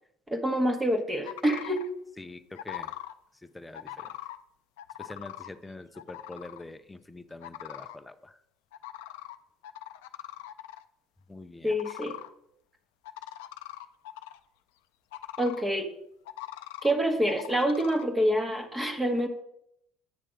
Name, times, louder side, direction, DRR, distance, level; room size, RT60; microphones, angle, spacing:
voice 1, 0.3-1.8 11.6-12.2 15.4-15.9 16.8-19.3, equal, 15° right, 5 dB, 1.1 m, -26 dB
sound 1, 1.2-1.9 2.5-3.1 3.7-4.4 4.8-5.5 5.9-6.6 7.4-8.0 8.7-9.4 9.6-10.8 11.7-12.3 13.1-14.4 15.1-15.6 16.3-16.9 17.3-18.0, left 13 dB, 90° left, 0.4 m, -41 dB
voice 2, 2.2-2.9 3.4-4.1 5.0-8.4 11.3-11.7, left 2 dB, 10° left, 10 dB, 0.5 m, -45 dB
8.7 x 3.3 x 6.3 m, 0.74 s
supercardioid pair, 100°, 0 cm